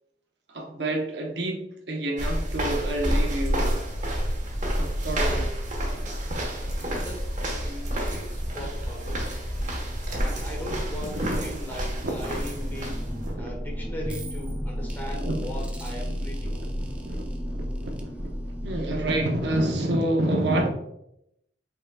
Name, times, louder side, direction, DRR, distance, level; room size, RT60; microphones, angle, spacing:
voice 1, 0.5-3.7 4.8-5.5 10.6-11.5 12.0-12.1 12.7-12.8 13.2-13.6 14.8-15.7 16.4-20.7, right 1 dB, 70° right, 1 dB, 0.9 m, -29 dB
sound 1, 2.2-13.3, equal, 45° right, 1.2 m, -29 dB
voice 2, 6.8-9.3 10.1-13.0 13.4-16.6, left 1 dB, 10° left, -1 dB, 1.1 m, -39 dB
sound 2, 11.6-20.1, equal, 5° right, 0.5 m, -33 dB
5.5 x 4.0 x 2.3 m, 0.79 s
head